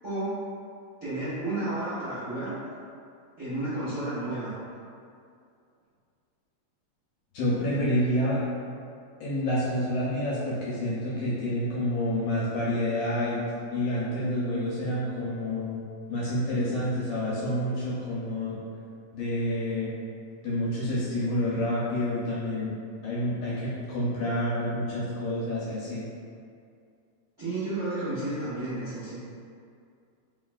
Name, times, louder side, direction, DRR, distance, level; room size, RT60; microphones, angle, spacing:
voice 1, 0.0-0.4 1.0-2.5 3.4-4.5 27.4-29.2, right 2 dB, 45° right, -15 dB, 0.8 m, -32 dB
voice 2, 7.3-8.4 9.2-13.4 13.7-15.8 16.1-18.6 19.1-19.9 20.4-22.7 23.0-26.1, left 1 dB, 70° left, -9 dB, 1.6 m, -28 dB
4.0 x 3.2 x 2.3 m, 2.4 s
omnidirectional pair, 3.3 m